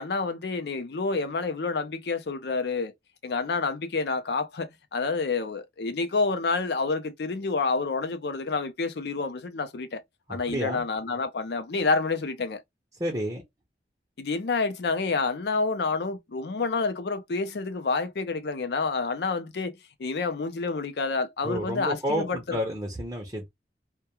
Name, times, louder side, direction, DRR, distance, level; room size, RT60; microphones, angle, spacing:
voice 1, 0.0-2.9 3.2-10.0 10.3-12.6 14.2-22.6, left 4 dB, 60° left, 0.5 m, -28 dB
voice 2, 10.3-10.8 13.0-13.4 21.4-23.7, equal, 20° right, 0.5 m, -31 dB
2.2 x 2.2 x 2.9 m
head